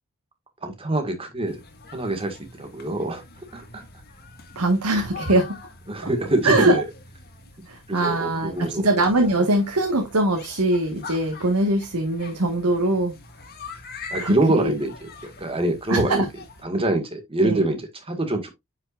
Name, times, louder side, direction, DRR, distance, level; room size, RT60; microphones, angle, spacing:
voice 1, 0.6-1.6 1.9-3.2 3.5-3.8 5.9-6.9 7.9-8.9 9.4-9.5 14.1-16.3 16.6-18.5, right 2 dB, 25° right, 1.8 m, -25 dB
sound 1, 1.5-16.6, left 4 dB, 45° left, 1.6 m, -44 dB
voice 2, 4.5-5.6 6.4-6.8 7.7-13.1 14.1-14.7 15.9-16.3 17.4-17.6, right 1 dB, 90° right, 1.6 m, -22 dB
9.5 x 5.8 x 2.5 m
head